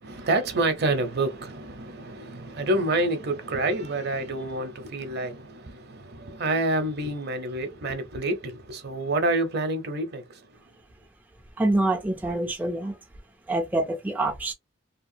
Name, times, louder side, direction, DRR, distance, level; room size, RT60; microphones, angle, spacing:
voice 1, 0.0-10.5, right 2 dB, 55° right, 0.7 m, -28 dB
voice 2, 11.6-12.9 13.5-14.5, right 2 dB, 10° right, 0.4 m, -26 dB
2.9 x 2.2 x 2.6 m
head